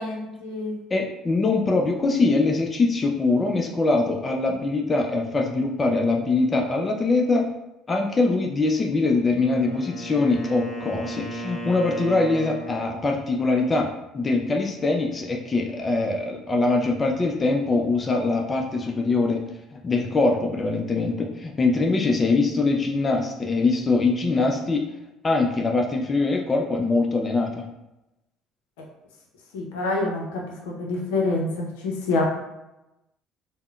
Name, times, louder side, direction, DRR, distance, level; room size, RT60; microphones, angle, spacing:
voice 1, 0.0-0.8 29.5-32.3, left 2 dB, 80° left, -1 dB, 0.5 m, -27 dB
voice 2, 0.9-7.5 7.9-19.4 19.8-24.8 25.2-27.6, left 3 dB, 30° left, 2 dB, 0.4 m, -23 dB
Wind instrument woodwind instrument, 9.2-13.1, right 1 dB, 45° left, 1.4 m, -36 dB
3.5 x 2.0 x 2.3 m, 0.94 s
hypercardioid pair, 65°, 0 cm